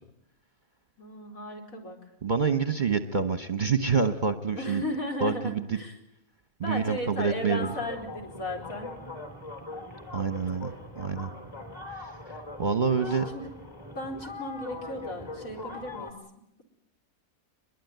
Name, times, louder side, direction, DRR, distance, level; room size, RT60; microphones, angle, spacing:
voice 1, 1.0-2.0 4.5-5.9 6.6-8.9 13.1-13.5 13.9-16.1, left 1 dB, 65° left, 1 dB, 4.7 m, -35 dB
voice 2, 2.2-4.8 5.2-5.8 6.6-7.7 10.1-11.3 12.0-12.1 12.6-13.3, right 5 dB, 35° right, 9 dB, 1.1 m, -27 dB
sound 1, 7.6-16.1, left 2 dB, 15° left, 2.9 m, -41 dB
24.5 x 22.0 x 9.3 m, 0.80 s
omnidirectional pair, 1.6 m